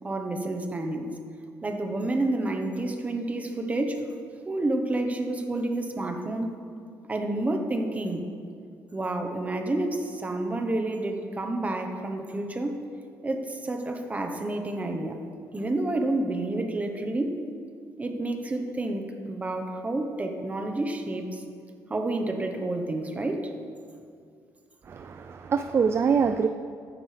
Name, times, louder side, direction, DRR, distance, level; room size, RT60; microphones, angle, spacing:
voice 1, 0.0-1.1 1.6-4.1 4.5-6.5 7.1-8.2 8.9-12.8 13.2-15.2 15.5-17.4 18.0-21.4 21.9-23.5, right 2 dB, 20° right, 4 dB, 1.0 m, -29 dB
voice 2, 24.9-26.5, right 6 dB, 35° right, 9 dB, 0.4 m, -24 dB
14.5 x 10.0 x 3.4 m, 2.4 s
cardioid pair, 125°, 7 cm